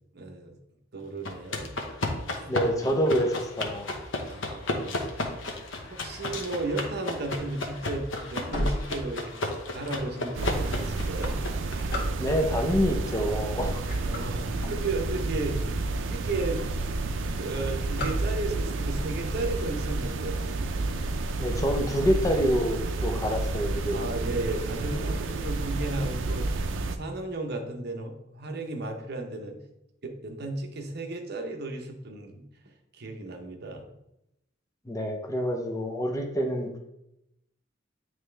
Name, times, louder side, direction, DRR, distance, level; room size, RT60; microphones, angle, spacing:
voice 1, 0.1-0.6 0.9-1.8 4.3-5.1 5.9-11.4 14.0-15.6 16.1-16.6 17.4-20.4 23.9-26.5 26.9-29.6 30.0-33.9, right 2 dB, 55° right, 4 dB, 0.8 m, -34 dB
sound 1, 1.3-11.7, left 2 dB, 75° left, 0.9 m, -33 dB
voice 2, 2.5-3.9 12.2-13.8 21.4-24.0 24.9-25.1 34.9-36.8, equal, 15° left, 2 dB, 0.6 m, -27 dB
sound 2, 7.8-9.6 10.2-10.3 10.9-12.6 13.3-13.5 13.8-15.3 15.8-15.9 16.1-16.2 16.5-16.9 17.1-18.8, left 1 dB, 55° left, 1.7 m, -34 dB
sound 3, 10.3-27.0, right 2 dB, 75° right, 0.5 m, -30 dB
9.0 x 3.3 x 3.3 m, 0.85 s
head